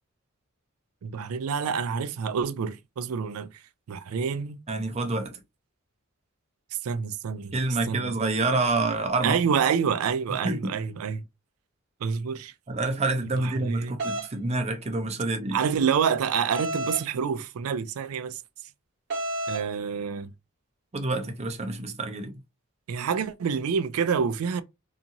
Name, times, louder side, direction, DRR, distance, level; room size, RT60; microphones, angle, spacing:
voice 1, 1.0-3.5 3.9-4.6 6.8-7.5 7.9-8.2 9.2-11.2 12.0-12.5 13.4-14.0 15.5-18.4 19.5-20.3 22.9-24.6, right 6 dB, 80° right, 0.4 m, -27 dB
voice 2, 4.7-5.4 7.5-9.4 10.4-10.7 12.7-15.6 20.9-22.4, right 2 dB, 30° right, 0.5 m, -27 dB
sound 1, 14.0-14.3 16.5-17.1 19.1-19.7, right 2 dB, 55° right, 1.0 m, -30 dB
2.8 x 2.5 x 2.6 m
head